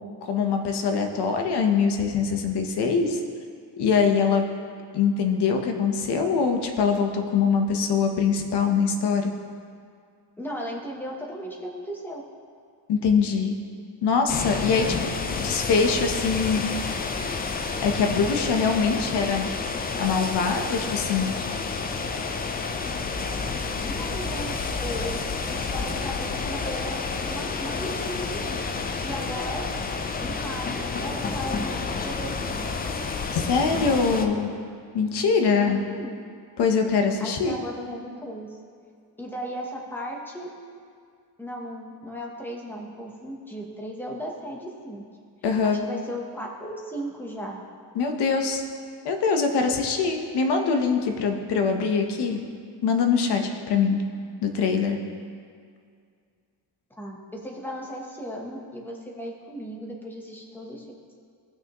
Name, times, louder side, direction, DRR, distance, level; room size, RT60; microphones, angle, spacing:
voice 1, 0.2-3.2 3.8-4.4 4.9-9.3 12.9-13.5 14.0-14.9 15.3-16.7 17.8-19.5 20.0-21.3 33.3-34.5 34.9-35.8 36.6-37.6 45.4-45.8 47.9-48.6 49.0-52.4 52.8-54.0 54.4-55.0, left 5 dB, 70° left, 4 dB, 1.0 m, -23 dB
voice 2, 10.4-12.2 14.8-15.1 23.8-28.6 29.0-29.7 30.2-32.7 35.6-36.3 37.2-38.6 39.2-40.5 41.4-45.0 45.6-47.6 57.0-60.9, equal, 5° left, -1 dB, 0.9 m, -36 dB
sound 1, 14.3-34.3, left 4 dB, 25° left, 0.3 m, -30 dB
16.0 x 5.9 x 3.0 m, 2.2 s
cardioid pair, 175°, 42 cm